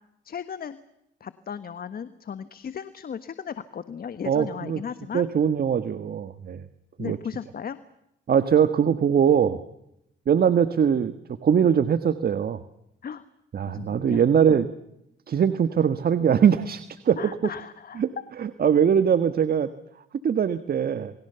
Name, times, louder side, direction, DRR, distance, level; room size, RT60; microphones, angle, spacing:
voice 1, 0.2-0.8 1.2-5.2 7.0-7.8 13.0-13.2 13.7-14.2 17.2-18.0, left 7 dB, 50° left, 13 dB, 1.4 m, -36 dB
voice 2, 4.2-4.8 5.1-6.6 7.0-7.2 8.3-9.6 10.3-11.1 11.4-12.6 13.5-14.7 15.3-17.2 18.0-18.1 18.4-19.7 20.2-21.1, right 8 dB, 50° right, 12 dB, 1.5 m, -21 dB
28.5 x 22.0 x 6.9 m, 0.82 s
cardioid pair, 90°, 20 cm